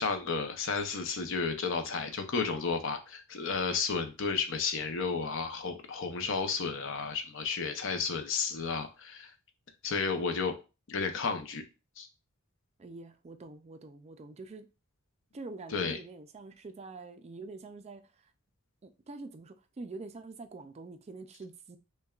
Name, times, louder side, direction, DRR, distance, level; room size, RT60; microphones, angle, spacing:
voice 1, 0.0-9.3 9.8-10.5 10.9-11.6 12.0-12.1 15.7-16.0, left 5 dB, 65° left, 0.6 m, -32 dB
voice 2, 12.8-14.7 15.3-18.3 18.8-21.8, right 3 dB, 30° right, 0.4 m, -45 dB
6.3 x 2.2 x 2.3 m
head